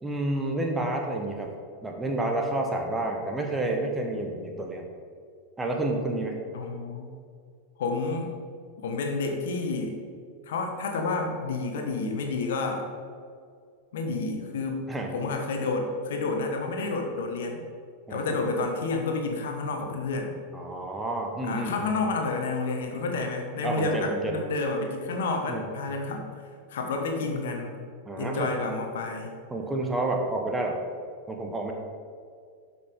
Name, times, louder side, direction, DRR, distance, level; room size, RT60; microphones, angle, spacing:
voice 1, 0.0-1.5 1.8-4.8 5.6-6.4 14.9-15.1 18.1-18.2 20.5-21.9 23.6-24.4 25.5-25.7 28.1-28.5 29.5-30.8 31.3-31.7, right 2 dB, 10° right, 1 dB, 1.2 m, -29 dB
voice 2, 6.5-7.1 7.8-8.3 8.8-10.0 10.5-12.8 13.9-17.6 18.1-20.3 21.4-26.3 26.7-27.8 28.2-29.3, left 3 dB, 60° left, 3 dB, 1.3 m, -30 dB
12.0 x 5.7 x 3.7 m, 2.2 s
figure-of-eight pair, 90°, 0 cm